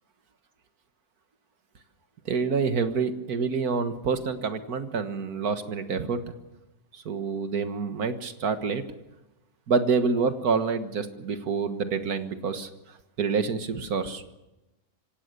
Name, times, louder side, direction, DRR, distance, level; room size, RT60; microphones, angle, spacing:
voice 1, 2.3-6.2 6.9-8.8 9.7-12.7 13.2-14.2, right 5 dB, 85° right, 8 dB, 2.0 m, -27 dB
25.5 x 17.5 x 6.8 m, 0.98 s
omnidirectional pair, 1.5 m